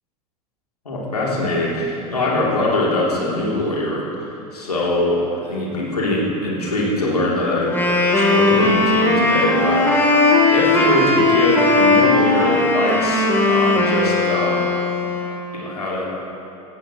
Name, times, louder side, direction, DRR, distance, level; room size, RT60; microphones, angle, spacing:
voice 1, 0.8-14.7 15.5-16.1, left 1 dB, 85° left, -4 dB, 2.7 m, -23 dB
Wind instrument woodwind instrument, 7.6-15.4, left 2 dB, 10° left, 2.7 m, -17 dB
17.0 x 15.0 x 2.9 m, 2.7 s
figure-of-eight pair, 85°, 19 cm